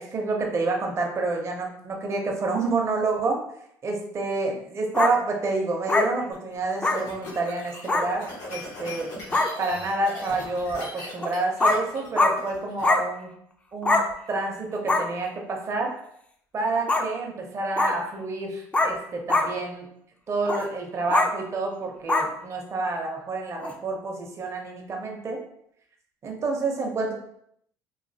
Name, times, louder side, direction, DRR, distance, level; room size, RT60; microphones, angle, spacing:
voice 1, 0.0-3.4 3.8-9.1 9.6-13.3 13.7-14.0 14.3-16.0 16.5-19.9 20.3-25.4 26.2-27.1, right 3 dB, 40° right, 1 dB, 0.6 m, -28 dB
sound 1, 4.9-5.1 5.9-6.1 6.8-7.0 7.9-8.1 8.9-9.0 9.3-9.5 11.2-11.3 11.6-11.8 12.2-12.3 12.8-13.0 13.8-14.1 14.9-15.0 16.9-17.1 17.8-17.9 18.7-19.0 19.3-19.5 20.5-20.6 21.1-21.3 22.1-22.3 23.6-23.7, left 2 dB, 15° left, 0.4 m, -22 dB
sound 2, 6.3-12.8, left 2 dB, 90° left, 1.1 m, -39 dB
3.1 x 2.5 x 2.7 m, 0.72 s
supercardioid pair, 95°, 8 cm